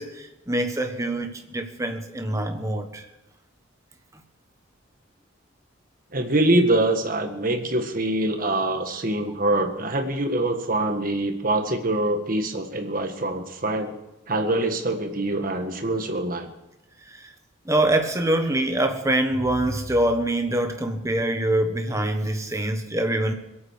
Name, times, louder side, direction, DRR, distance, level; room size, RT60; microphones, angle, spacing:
voice 1, 0.0-3.0 17.1-17.3 17.6-23.3, right 1 dB, 15° right, 5 dB, 1.3 m, -24 dB
voice 2, 6.1-13.9 14.3-16.5, right 1 dB, 40° right, 5 dB, 1.6 m, -24 dB
22.0 x 8.8 x 6.6 m, 0.96 s
head